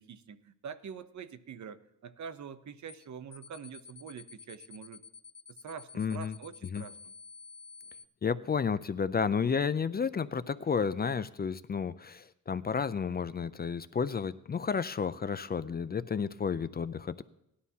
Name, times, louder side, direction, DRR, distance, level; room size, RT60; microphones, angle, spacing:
voice 1, 0.0-5.0 5.6-7.1, right 6 dB, 60° right, 13 dB, 0.8 m, -45 dB
sound 1, 2.9-3.1 3.3-8.1, left 6 dB, 55° left, 0.9 m, -50 dB
voice 2, 6.0-6.3 6.7-6.8 8.2-17.2, left 6 dB, 30° left, 14 dB, 0.4 m, -31 dB
18.5 x 11.0 x 2.8 m, 0.80 s
cardioid pair, 90°, 32 cm